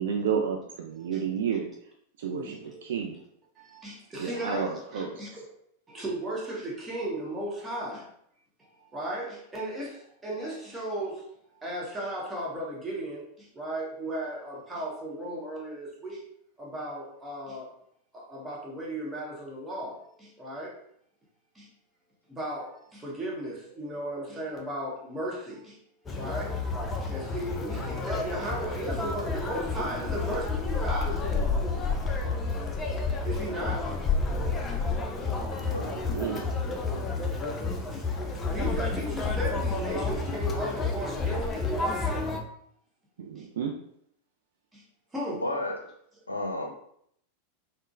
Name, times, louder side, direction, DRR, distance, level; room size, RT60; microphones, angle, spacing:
voice 1, 0.0-1.7 2.2-3.2 4.2-5.2 36.0-36.4 43.2-43.7, right 7 dB, 60° right, 1 dB, 0.3 m, -31 dB
voice 2, 2.3-2.8 3.6-5.3 5.9-8.0 8.9-11.2 11.6-13.3 13.5-16.2 16.6-17.7 18.1-20.8 21.6-21.7 22.3-25.8 26.2-26.5 27.0-31.2 32.5-32.6 33.2-33.9 35.2-35.3 37.9-38.0 38.5-41.7 42.0-42.1 44.7-44.8 45.1-45.4, right 1 dB, 10° right, -4 dB, 0.9 m, -36 dB
Conversation, 26.1-42.4, left 3 dB, 20° left, 0.4 m, -30 dB
voice 3, 35.6-36.0 45.4-45.9 46.3-46.7, left 1 dB, 80° left, 2 dB, 0.5 m, -32 dB
3.6 x 2.0 x 2.4 m, 0.69 s
figure-of-eight pair, 90°, 0 cm